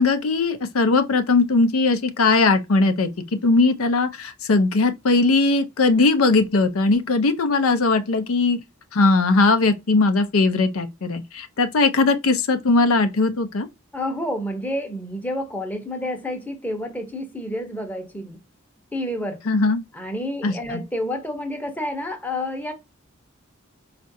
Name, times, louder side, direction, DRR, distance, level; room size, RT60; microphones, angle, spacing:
voice 1, 0.0-3.1 3.4-8.6 8.9-13.7 19.5-19.8 20.4-20.8, left 3 dB, 85° left, 0.6 m, -19 dB
voice 2, 13.9-18.4 18.9-19.4 19.9-22.7, left 1 dB, 10° left, 0.7 m, -29 dB
4.4 x 2.5 x 2.6 m
head